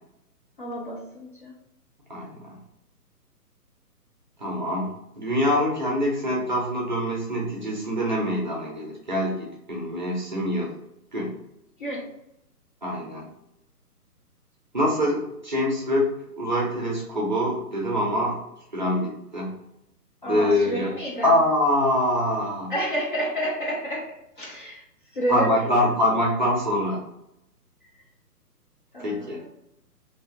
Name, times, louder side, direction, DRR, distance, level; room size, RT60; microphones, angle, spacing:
voice 1, 0.6-1.5 11.8-12.1 20.2-21.4 22.7-24.8 25.1-25.9 27.9-28.1 28.9-29.5, right 1 dB, 35° left, -4 dB, 0.6 m, -30 dB
voice 2, 2.1-2.6 4.4-10.7 11.1-11.4 12.8-13.3 14.7-18.4 18.7-19.6 20.3-20.9 21.2-22.7 25.3-27.1 29.0-29.4, left 1 dB, 30° right, -3 dB, 0.6 m, -25 dB
2.8 x 2.6 x 3.5 m, 0.84 s
figure-of-eight pair, 135°, 48 cm